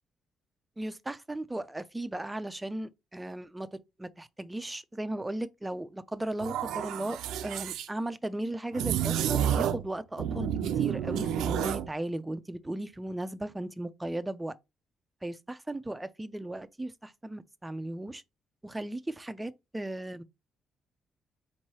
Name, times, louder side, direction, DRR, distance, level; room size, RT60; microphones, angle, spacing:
voice 1, 0.8-3.7 4.0-14.5 15.2-18.2 18.6-20.2, right 1 dB, 10° right, 0.4 m, -36 dB
sound 1, 6.4-7.9 8.7-9.9 10.2-11.9, right 9 dB, 85° right, 0.4 m, -30 dB
4.5 x 3.0 x 2.8 m
cardioid pair, 90°, 0 cm